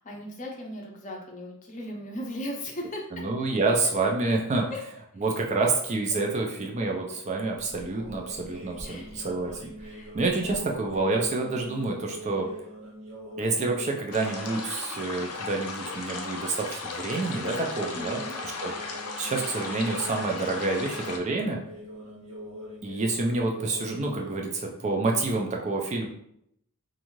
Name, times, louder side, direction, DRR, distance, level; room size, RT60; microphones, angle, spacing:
voice 1, 0.0-3.2 4.7-4.8 5.1-5.2 8.8-9.3 9.8-10.1 10.4-10.6 17.9-18.4 22.9-23.0, left 1 dB, 35° left, 0 dB, 0.5 m, -38 dB
voice 2, 3.1-4.7 5.2-9.6 10.1-12.5 13.4-18.7 19.2-21.6 22.8-26.1, right 3 dB, 30° right, 1 dB, 0.3 m, -28 dB
sound 1, 7.5-14.6 14.9-15.4 17.3-24.3, right 1 dB, 70° right, 1.4 m, -42 dB
sound 2, 14.1-21.2, left 3 dB, 85° left, 0.5 m, -36 dB
2.5 x 2.3 x 3.0 m, 0.74 s
head